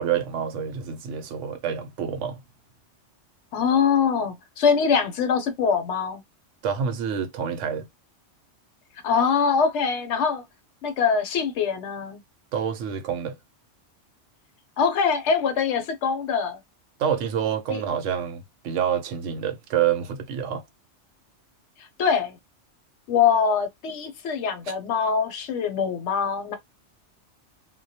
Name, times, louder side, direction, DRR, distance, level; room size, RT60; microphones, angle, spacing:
voice 1, 0.0-2.4 6.6-7.9 12.5-13.4 17.0-20.6, right 8 dB, 80° right, 0.9 m, -27 dB
voice 2, 3.5-6.2 9.0-10.4 10.8-12.2 14.8-16.6 17.7-17.8 21.8-22.4 23.1-26.6, left 6 dB, 75° left, 0.9 m, -23 dB
2.2 x 2.1 x 2.7 m
omnidirectional pair, 1.2 m